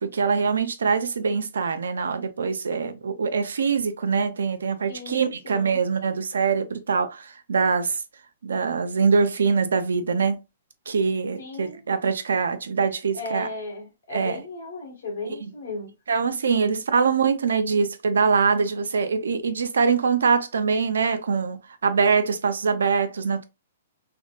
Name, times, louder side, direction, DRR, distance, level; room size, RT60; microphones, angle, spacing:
voice 1, 0.0-8.0 8.4-10.4 10.9-13.5 14.1-14.4 15.3-15.5 16.1-23.4, right 5 dB, 85° right, 0.5 m, -23 dB
voice 2, 4.9-5.8 11.4-11.8 13.1-15.9, left 2 dB, 75° left, 1.5 m, -36 dB
3.5 x 2.2 x 2.4 m
hypercardioid pair, 135°, 0 cm